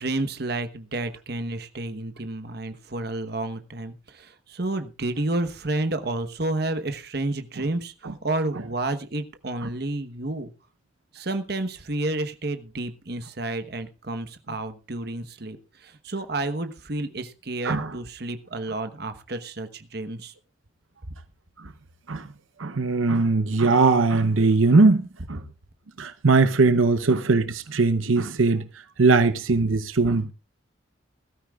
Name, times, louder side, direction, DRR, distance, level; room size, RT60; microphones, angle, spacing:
voice 1, 0.0-10.5 11.1-20.3, right 2 dB, 50° right, 1.1 m, -30 dB
voice 2, 17.6-17.9 21.6-21.7 22.1-22.3 22.6-25.4 26.0-28.7 29.0-30.3, right 3 dB, 85° right, 0.8 m, -20 dB
20.0 x 13.0 x 2.4 m
head